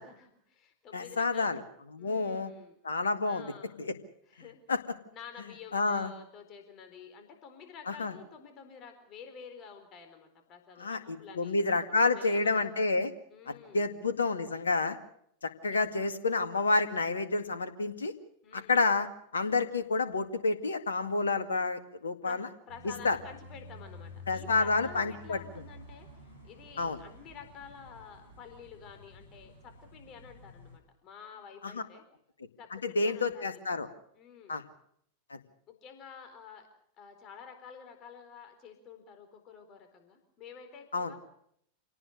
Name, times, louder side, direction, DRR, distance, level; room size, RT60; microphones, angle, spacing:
voice 1, 0.0-1.5 2.0-2.8 3.2-3.7 4.3-4.6 5.1-11.6 12.0-12.7 13.3-13.9 15.7-15.8 18.4-18.9 22.2-22.4 22.7-26.1 26.4-32.0 32.6-33.7 34.1-34.5 35.7-36.7 37.0-41.3, left 7 dB, 35° left, 7 dB, 4.2 m, -50 dB
voice 2, 0.9-1.6 1.9-2.5 2.8-3.5 3.8-3.9 4.7-4.8 5.7-6.1 7.9-8.1 10.8-13.1 13.5-15.0 15.4-18.1 18.5-19.1 19.3-22.5 23.0-23.2 24.3-25.4 26.8-27.0 31.6-31.8 32.7-33.9 34.5-34.6 35.3-35.4 40.9-41.1, left 3 dB, 70° left, 10 dB, 2.0 m, -29 dB
sound 1, 22.7-30.8, left 2 dB, 80° right, 6.5 m, -50 dB
27.0 x 18.5 x 6.6 m, 0.69 s
figure-of-eight pair, 90°, 0 cm